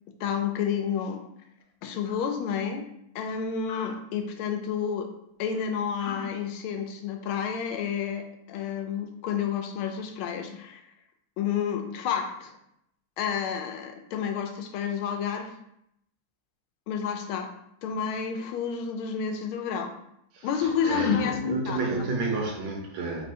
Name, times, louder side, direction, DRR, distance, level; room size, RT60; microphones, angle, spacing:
voice 1, 0.2-1.2 1.8-2.8 3.1-5.1 5.4-10.8 11.4-12.5 13.2-15.5 16.9-17.5 17.8-19.9 20.4-22.1, left 7 dB, 90° left, 5 dB, 1.5 m, -30 dB
voice 2, 20.3-23.2, right 3 dB, 85° right, 0 dB, 1.8 m, -31 dB
4.1 x 2.6 x 4.2 m, 0.77 s
omnidirectional pair, 2.3 m